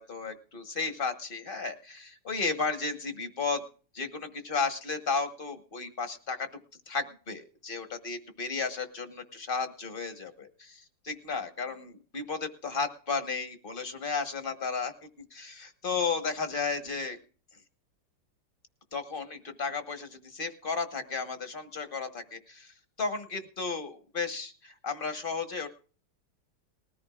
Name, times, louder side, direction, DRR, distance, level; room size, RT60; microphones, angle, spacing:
voice 1, 0.0-3.6 3.9-6.5 6.9-14.9 15.3-17.2 18.9-25.7, left 4 dB, 35° left, 8 dB, 1.0 m, -34 dB
20.0 x 14.0 x 2.4 m, 0.39 s
omnidirectional pair, 2.4 m